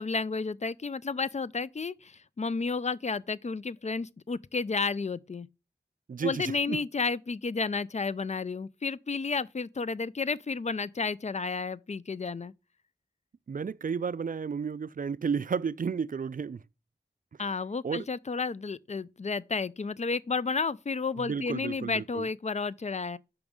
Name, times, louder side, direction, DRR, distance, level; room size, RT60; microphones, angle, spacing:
voice 1, 0.0-5.5 6.2-12.5 17.4-23.2, left 4 dB, 40° left, 0.4 m, -32 dB
voice 2, 6.1-6.8 13.5-16.6 17.8-18.1 21.2-22.3, right 6 dB, 55° right, 0.4 m, -32 dB
5.9 x 5.3 x 6.3 m
wide cardioid pair, 40°, 17 cm